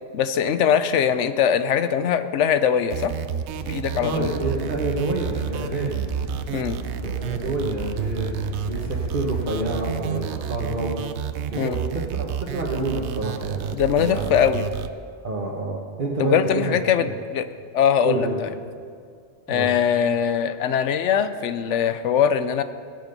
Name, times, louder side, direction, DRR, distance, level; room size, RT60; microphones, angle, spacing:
voice 1, 0.1-3.1 3.6-4.3 6.5-6.8 11.6-11.8 13.7-14.7 16.2-17.5 17.7-18.5 19.5-22.6, left 8 dB, 80° left, 11 dB, 1.0 m, -21 dB
sound 1, 2.9-14.9, right 9 dB, 75° right, 0.9 m, -30 dB
sound 2, 3.5-9.8, left 3 dB, 55° left, 1.7 m, -37 dB
voice 2, 4.0-5.9 7.0-8.3 8.6-11.0 11.5-14.4 15.2-17.2 18.0-18.5 19.5-19.7, right 2 dB, 45° right, -3 dB, 1.4 m, -28 dB
21.0 x 7.6 x 5.3 m, 2.1 s
omnidirectional pair, 1.2 m